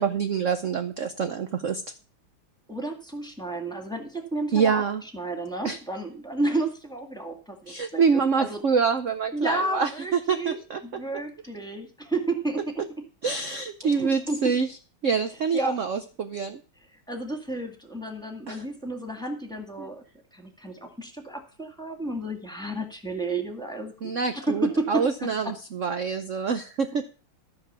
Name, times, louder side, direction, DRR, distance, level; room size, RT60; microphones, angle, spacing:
voice 1, 0.0-1.8 4.5-5.0 5.6-5.8 7.7-10.8 13.2-14.7 15.0-16.6 18.5-18.6 19.8-19.9 24.0-27.0, right 6 dB, 70° right, 9 dB, 0.7 m, -26 dB
voice 2, 2.7-4.8 5.1-8.6 9.3-10.6 10.8-12.8 13.8-14.5 15.5-15.8 17.1-20.0 20.3-25.5, right 2 dB, ahead, 3 dB, 1.7 m, -31 dB
14.0 x 5.3 x 6.8 m, 0.36 s
omnidirectional pair, 2.2 m